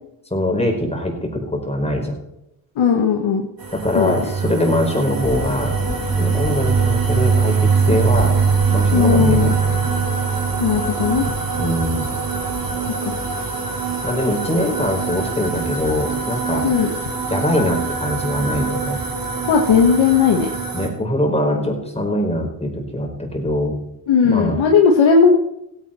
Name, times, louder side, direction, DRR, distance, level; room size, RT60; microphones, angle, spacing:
voice 1, 0.3-2.2 3.7-5.7 6.2-8.3 8.7-9.8 11.6-12.1 14.0-16.7 17.3-19.0 20.7-23.8 24.2-24.6, left 1 dB, 10° left, 2 dB, 4.6 m, -22 dB
voice 2, 2.8-3.4 3.9-4.1 8.9-9.5 10.6-11.3 13.0-13.1 16.6-16.9 19.5-20.5 24.1-25.4, left 6 dB, 65° left, 2 dB, 1.6 m, -16 dB
sound 1, 3.6-20.9, right 5 dB, 45° right, 3.4 m, -22 dB
sound 2, 5.2-12.8, left 4 dB, 40° left, 1.7 m, -32 dB
16.5 x 9.1 x 4.4 m, 0.85 s
supercardioid pair, 50°, 49 cm